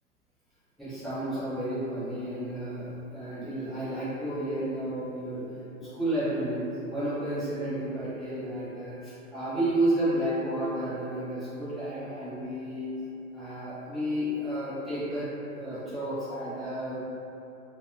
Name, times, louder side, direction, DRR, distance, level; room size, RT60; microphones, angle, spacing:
voice 1, 0.8-5.5 5.8-12.9 13.3-15.3 15.5-17.0, right 1 dB, ahead, -15 dB, 0.4 m, -31 dB
2.4 x 2.3 x 2.8 m, 2.8 s
hypercardioid pair, 125°, 44 cm